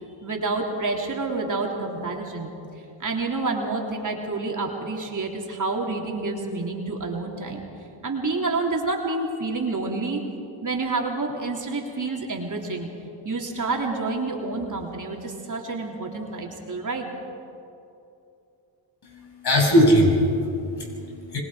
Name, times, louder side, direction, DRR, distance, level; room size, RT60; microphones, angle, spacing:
voice 1, 0.2-2.5 3.0-7.6 8.0-10.2 10.6-12.9 13.2-17.1, right 3 dB, 40° right, 0 dB, 3.4 m, -28 dB
voice 2, 19.0-21.4, equal, 55° left, 0 dB, 6.9 m, -21 dB
26.5 x 21.0 x 5.1 m, 2.7 s
cardioid pair, 70°, 47 cm